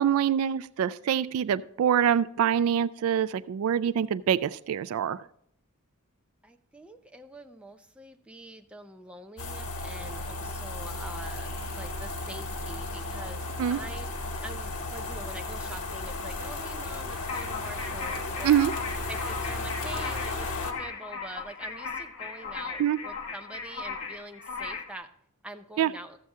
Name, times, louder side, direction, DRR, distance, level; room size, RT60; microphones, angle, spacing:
voice 1, 0.0-5.2 13.6-13.8 18.4-18.7 22.8-23.0 25.8-25.9, right 9 dB, 70° right, 16 dB, 0.3 m, -25 dB
voice 2, 6.4-11.5 11.8-14.1 14.4-18.6 19.1-25.1 25.4-26.2, right 2 dB, 5° right, 5 dB, 0.5 m, -45 dB
sound 1, 9.4-20.7, left 2 dB, 90° left, 1.3 m, -34 dB
sound 2, 9.9-19.7, left 1 dB, 40° left, 4.0 m, -51 dB
sound 3, 17.3-25.0, left 5 dB, 60° left, 1.1 m, -38 dB
13.5 x 7.5 x 3.6 m, 0.71 s
head